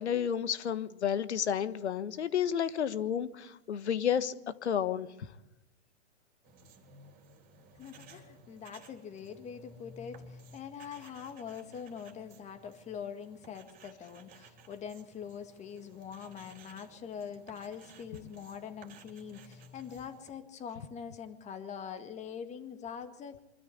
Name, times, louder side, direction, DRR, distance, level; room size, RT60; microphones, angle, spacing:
voice 1, 0.0-4.3 4.6-5.1, left 8 dB, 80° left, 13 dB, 1.5 m, -31 dB
sound 1, 6.4-20.3, right 2 dB, 25° right, 3.5 m, -56 dB
voice 2, 7.7-23.4, left 7 dB, 20° left, 9 dB, 1.8 m, -44 dB
24.0 x 13.5 x 8.4 m, 0.95 s
hypercardioid pair, 130°, 34 cm